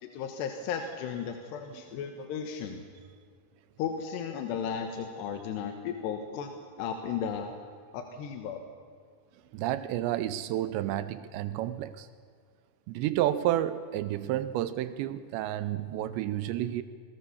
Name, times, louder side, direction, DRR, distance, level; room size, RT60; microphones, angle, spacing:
voice 1, 0.0-2.8 3.8-6.5 6.8-7.5 7.9-8.6, left 7 dB, 70° left, 6 dB, 3.0 m, -35 dB
voice 2, 9.5-12.1 12.9-16.8, right 13 dB, 80° right, 13 dB, 2.6 m, -30 dB
27.0 x 21.0 x 7.0 m, 2.2 s
omnidirectional pair, 5.7 m